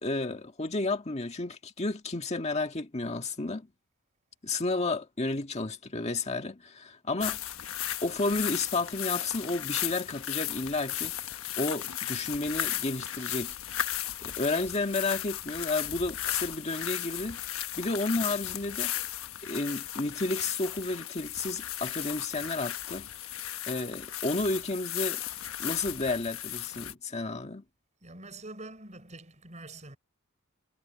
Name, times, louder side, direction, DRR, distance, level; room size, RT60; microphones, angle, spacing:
voice 1, 0.0-3.7 4.4-7.4 8.0-13.6 14.2-17.4 17.8-18.9 19.4-23.1 23.7-25.2 25.6-27.6, left 2 dB, 30° left, 1.7 m, -32 dB
sound 1, 7.2-26.9, left 12 dB, 85° left, 1.2 m, -35 dB
voice 2, 28.0-30.0, right 2 dB, 35° right, 4.4 m, -45 dB
head